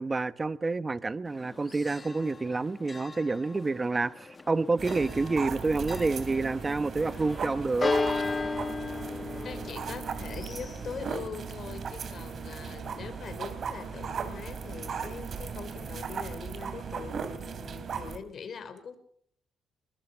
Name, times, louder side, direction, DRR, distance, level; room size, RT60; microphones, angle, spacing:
voice 1, 0.0-7.9, right 3 dB, 25° right, 1.2 m, -28 dB
Church bell, 1.3-16.3, left 3 dB, 30° left, 1.1 m, -38 dB
sound 1, 4.8-18.2, right 6 dB, 55° right, 3.3 m, -37 dB
voice 2, 9.4-19.0, left 6 dB, 55° left, 4.6 m, -42 dB
24.0 x 21.5 x 5.9 m
cardioid pair, 90°, 0 cm